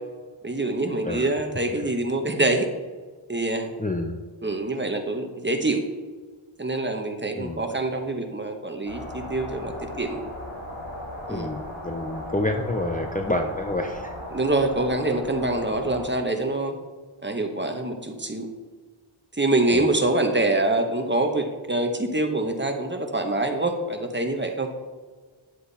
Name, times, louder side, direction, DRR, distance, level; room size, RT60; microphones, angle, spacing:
voice 1, 0.4-2.7 3.3-3.7 4.4-5.8 6.6-10.2 11.3-11.5 14.3-16.7 17.2-18.5 19.3-24.7, right 2 dB, 20° right, 5 dB, 1.3 m, -25 dB
voice 2, 3.8-4.1 7.4-7.6 11.3-14.1 19.7-20.0, left 1 dB, 15° left, 3 dB, 0.7 m, -28 dB
sound 1, 8.8-16.0, left 1 dB, 75° left, 3.3 m, -37 dB
10.5 x 7.4 x 4.2 m, 1.4 s
wide cardioid pair, 60°, 49 cm